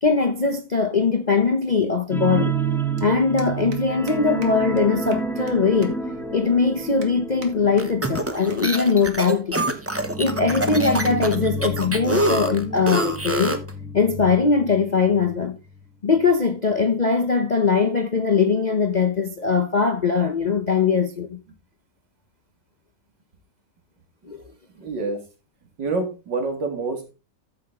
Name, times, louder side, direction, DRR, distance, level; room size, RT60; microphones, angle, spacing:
voice 1, 0.0-2.6 3.0-6.0 6.3-9.6 10.2-13.6 13.9-15.6 16.0-21.4 24.3-24.4, left 5 dB, 45° left, 0.5 m, -21 dB
sound 1, 0.7-0.8 2.2-2.3 2.5-2.7 3.0-3.1 3.4-3.8 4.1-4.2 4.4-4.5 4.8-4.9 5.1-5.5 5.8-5.9 6.4-6.5 7.0-7.5 7.8-8.2 8.5-8.6 8.9-9.0 9.2-9.3 9.6-9.9 10.6-10.9, right 4 dB, 50° right, 2.1 m, -43 dB
sound 2, 2.1-15.4 15.7-15.9 16.2-16.3, right 3 dB, ahead, 1.3 m, -30 dB
sound 3, 7.8-13.7, right 1 dB, 15° right, 0.6 m, -25 dB
voice 2, 24.7-25.2 25.8-27.1, right 3 dB, 85° right, 2.8 m, -27 dB
13.5 x 6.0 x 3.7 m
omnidirectional pair, 1.9 m